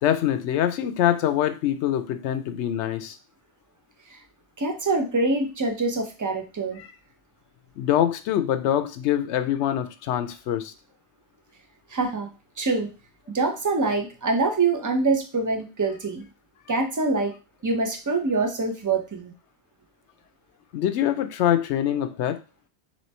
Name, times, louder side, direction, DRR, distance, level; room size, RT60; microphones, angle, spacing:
voice 1, 0.0-3.2 6.8-6.9 7.8-10.7 20.7-22.4, left 11 dB, 75° left, 9 dB, 0.8 m, -24 dB
voice 2, 4.6-6.8 11.9-12.3 12.6-12.9 13.3-16.2 16.7-17.3 17.6-19.3, right 3 dB, 25° right, 4 dB, 0.4 m, -25 dB
3.1 x 3.1 x 4.2 m, 0.31 s
omnidirectional pair, 1.2 m